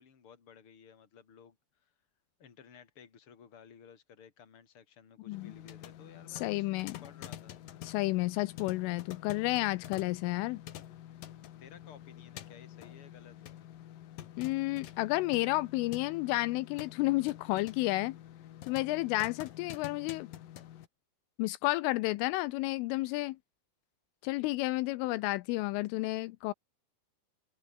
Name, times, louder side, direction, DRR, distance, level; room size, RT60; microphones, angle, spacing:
voice 1, 0.0-1.9 2.4-6.7 7.0-7.6 11.6-13.6, left 7 dB, 30° left, 3.4 m, -56 dB
sound 1, 5.3-20.9, left 12 dB, 65° left, 2.4 m, -48 dB
voice 2, 6.3-7.0 7.8-10.6 14.4-18.2 18.7-20.3 21.4-23.4 24.2-26.5, left 20 dB, 85° left, 3.2 m, -31 dB
omnidirectional pair, 5.8 m